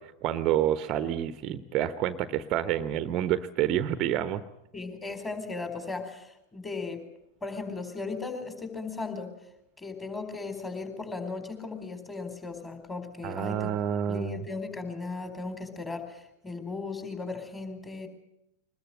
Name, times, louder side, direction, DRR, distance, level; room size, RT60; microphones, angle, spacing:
voice 1, 0.0-4.4 13.2-14.4, right 11 dB, 35° right, 13 dB, 1.0 m, -28 dB
voice 2, 4.7-7.0 7.4-9.3 9.8-13.7 14.1-18.1, left 3 dB, 15° left, 7 dB, 4.4 m, -37 dB
23.0 x 20.5 x 7.7 m, 0.82 s
figure-of-eight pair, 90°, 0 cm